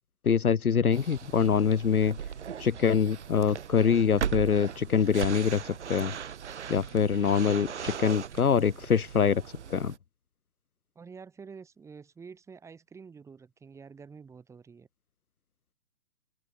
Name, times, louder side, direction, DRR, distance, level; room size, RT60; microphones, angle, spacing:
voice 1, 0.2-2.2 2.6-6.1 6.7-9.4 9.7-9.9, left 6 dB, 60° left, 1.5 m, -24 dB
sound 1, 0.9-10.0, right 8 dB, 45° right, 1.6 m, -38 dB
voice 2, 11.0-14.9, right 5 dB, 5° right, 5.8 m, -48 dB
open air
figure-of-eight pair, 150°, 48 cm